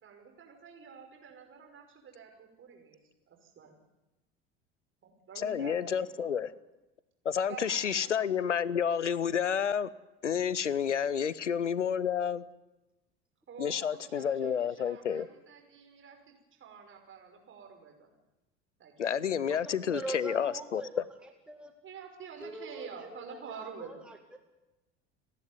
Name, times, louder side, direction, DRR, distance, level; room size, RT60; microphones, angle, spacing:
voice 1, 0.0-3.0 3.3-3.7 5.0-6.4 7.5-8.1 13.5-16.2 16.5-18.1 18.8-18.9 21.8-24.0, right 6 dB, 35° right, 5.5 m, -48 dB
voice 2, 5.4-6.5 7.2-9.9 10.2-12.4 13.6-15.3 19.0-20.8, left 8 dB, 85° left, 0.7 m, -30 dB
voice 3, 19.5-21.7 22.4-24.4, right 2 dB, 5° right, 2.0 m, -43 dB
29.5 x 11.0 x 9.4 m
figure-of-eight pair, 70°, 35 cm